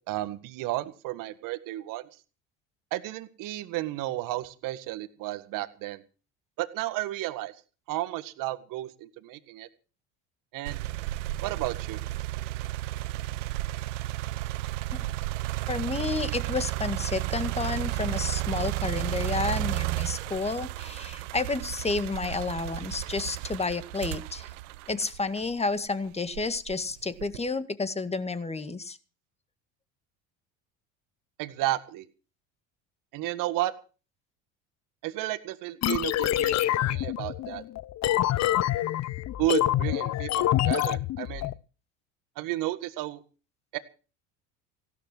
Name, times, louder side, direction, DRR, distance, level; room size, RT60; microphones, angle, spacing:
voice 1, 0.1-2.0 2.9-6.0 6.6-7.5 7.9-9.7 10.5-10.8 11.4-12.0 31.4-32.1 33.1-33.7 35.0-37.6 39.4-41.5 42.4-43.2 43.7-43.8, right 15 dB, 65° right, 12 dB, 1.8 m, -32 dB
sound 1, 10.7-25.7 26.3-27.5, right 18 dB, 85° right, 0.8 m, -33 dB
voice 2, 15.7-24.5 24.9-29.0, left 3 dB, 15° left, 12 dB, 1.9 m, -31 dB
sound 2, 35.8-41.5, left 13 dB, 50° left, 0.8 m, -26 dB
16.5 x 12.5 x 6.2 m, 0.37 s
hypercardioid pair, 80°, 36 cm